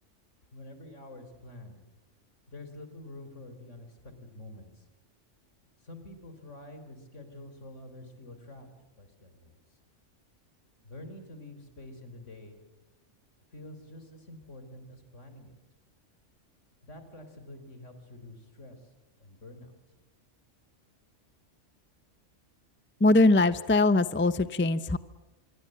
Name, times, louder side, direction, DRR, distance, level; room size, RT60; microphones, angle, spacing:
voice 1, 0.5-1.8 2.5-4.9 5.8-8.7 9.0-9.8 10.8-12.6 13.5-15.5 16.8-18.9 19.2-20.0, left 1 dB, 75° left, 8 dB, 4.2 m, -47 dB
voice 2, 23.0-25.0, left 2 dB, 10° left, 14 dB, 0.6 m, -22 dB
26.0 x 23.0 x 7.6 m, 1.0 s
omnidirectional pair, 1.3 m